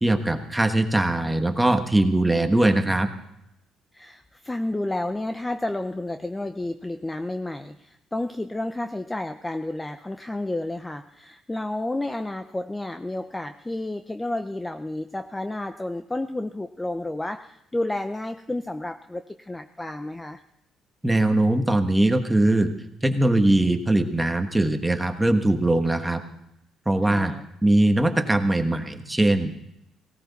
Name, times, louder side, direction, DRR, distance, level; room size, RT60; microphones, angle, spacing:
voice 1, 0.0-3.1 21.0-22.7 23.0-26.2 26.8-27.3 27.6-29.5, right 1 dB, 10° right, 6 dB, 1.3 m, -21 dB
voice 2, 3.9-20.4 27.0-27.5, left 1 dB, 10° left, 8 dB, 0.6 m, -31 dB
18.0 x 17.5 x 4.1 m, 0.81 s
cardioid pair, 125°, 0 cm